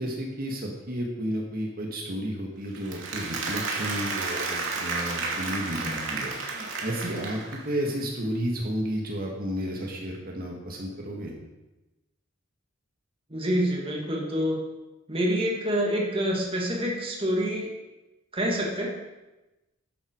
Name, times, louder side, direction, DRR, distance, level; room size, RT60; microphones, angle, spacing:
voice 1, 0.0-11.3, equal, 45° right, 0 dB, 2.3 m, -32 dB
Applause, 2.7-7.8, right 3 dB, 70° right, 2.8 m, -32 dB
voice 2, 13.3-14.6 15.1-17.7 18.3-19.0, equal, 30° right, -1 dB, 2.5 m, -27 dB
14.0 x 11.5 x 4.9 m, 1.0 s
head